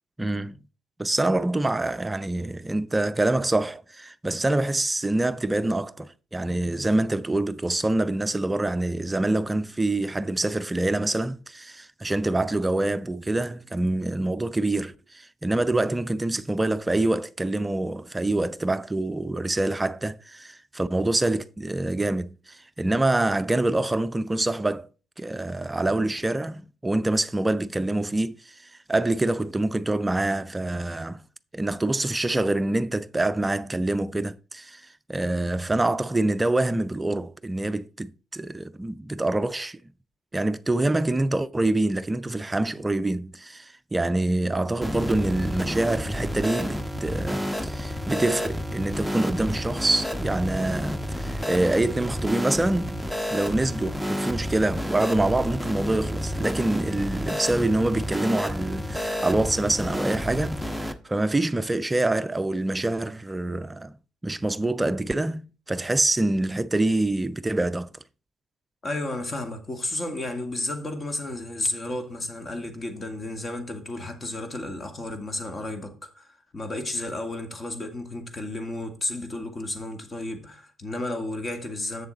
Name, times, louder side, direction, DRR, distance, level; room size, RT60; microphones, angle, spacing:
voice 1, 0.2-0.6 1.0-24.9 25.2-28.5 28.9-31.2 31.5-34.8 35.1-39.8 40.3-53.0 53.3-63.9 64.2-67.9, right 2 dB, 15° right, 0.5 m, -26 dB
sound 1, 44.8-60.9, equal, 5° left, 0.9 m, -30 dB
voice 2, 68.8-82.1, left 2 dB, 35° left, 2.0 m, -32 dB
8.0 x 6.9 x 4.0 m
hypercardioid pair, 55°, 0 cm